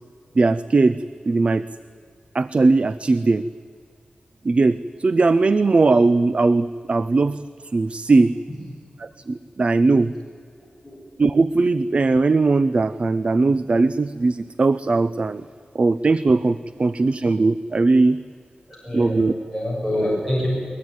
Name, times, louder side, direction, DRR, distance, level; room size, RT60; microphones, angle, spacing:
voice 1, 0.4-1.0 1.3-1.6 2.3-3.4 4.4-7.4 7.7-8.3 9.0-10.1 11.2-15.4 15.7-18.2 18.9-19.3, right 3 dB, 40° right, 15 dB, 0.5 m, -19 dB
voice 2, 10.6-11.0 18.7-19.3 19.5-20.5, left 1 dB, 10° right, -4 dB, 6.7 m, -26 dB
21.5 x 21.0 x 9.6 m, 2.3 s
wide cardioid pair, 130°, 3 cm